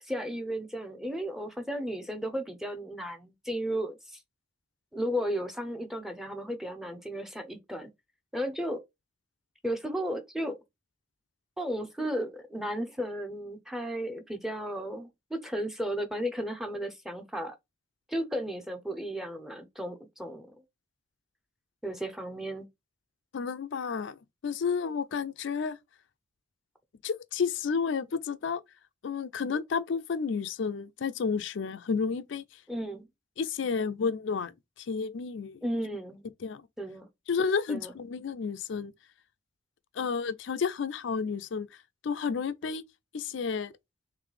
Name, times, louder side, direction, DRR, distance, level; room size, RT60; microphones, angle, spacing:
voice 1, 0.0-4.2 4.9-7.9 8.3-8.8 9.6-10.6 11.6-17.6 18.1-20.5 21.8-22.7 32.7-33.1 35.6-36.2 36.8-37.1 37.7-37.9, equal, ahead, 0.6 m, -34 dB
voice 2, 23.3-25.8 27.0-28.6 29.0-32.4 33.4-35.6 36.4-36.7 37.3-38.9 39.9-41.8 42.0-42.8 43.1-43.7, left 5 dB, 70° left, 0.4 m, -31 dB
3.9 x 3.2 x 3.2 m
head